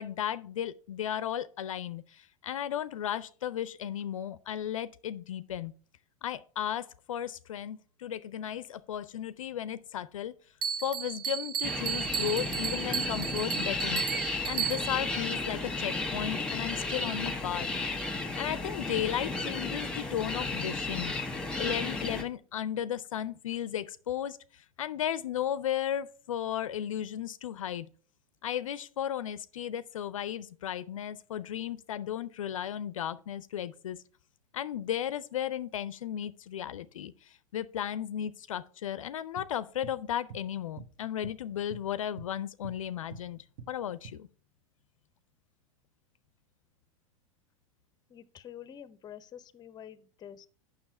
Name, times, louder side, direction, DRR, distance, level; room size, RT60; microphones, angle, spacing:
voice 1, 0.0-5.7 6.2-10.3 10.8-14.1 14.5-17.7 18.4-27.9 28.4-34.0 34.5-44.3, left 10 dB, 70° left, 0.5 m, -35 dB
Bell, 10.6-15.1, right 8 dB, 25° right, 0.4 m, -34 dB
sound 1, 11.6-22.2, left 3 dB, 5° left, 1.3 m, -34 dB
sound 2, 39.4-40.0 40.3-40.5 40.8-41.9 42.2-43.3 43.6-44.1, right 5 dB, 45° right, 1.0 m, -46 dB
voice 2, 48.1-50.5, left 9 dB, 25° left, 0.6 m, -47 dB
7.3 x 6.1 x 4.4 m
figure-of-eight pair, 90°, 17 cm